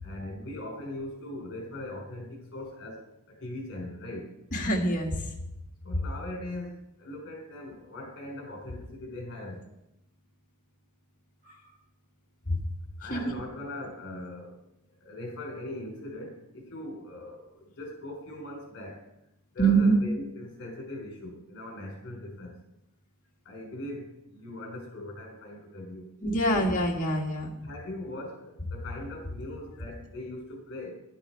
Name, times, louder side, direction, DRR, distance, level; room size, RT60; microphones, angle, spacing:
voice 1, 0.0-4.3 5.8-9.7 13.0-14.6 15.0-19.0 19.5-22.6 23.4-26.1 27.6-30.9, left 1 dB, 50° left, 0 dB, 4.3 m, -40 dB
voice 2, 4.5-5.2 12.5-12.6 13.1-13.2 19.6-20.0 26.2-27.5, right 2 dB, 35° left, 0 dB, 1.8 m, -25 dB
11.5 x 9.8 x 4.5 m, 0.84 s
head